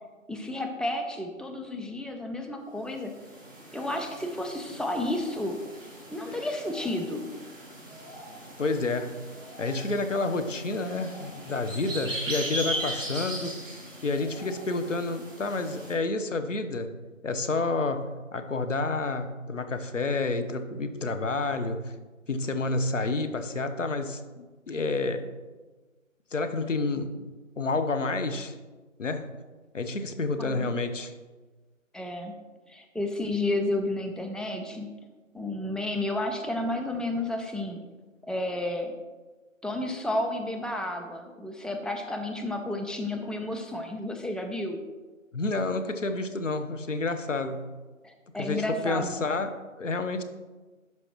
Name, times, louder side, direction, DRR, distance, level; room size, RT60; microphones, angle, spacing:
voice 1, 0.3-3.1 3.7-5.6 6.1-7.3 30.4-30.7 31.9-32.3 32.7-34.9 35.3-37.8 38.3-38.9 39.6-44.8 48.0-49.2, left 1 dB, ahead, 3 dB, 0.4 m, -31 dB
sound 1, 3.0-15.9, right 1 dB, 15° right, 1.7 m, -39 dB
voice 2, 8.6-9.2 9.6-13.5 14.0-16.9 17.2-21.9 22.3-25.3 26.3-27.2 27.6-28.5 29.0-29.3 29.7-31.1 45.3-47.7 48.4-50.2, left 3 dB, 65° left, 8 dB, 0.8 m, -29 dB
11.5 x 4.6 x 3.0 m, 1.3 s
figure-of-eight pair, 170°, 40 cm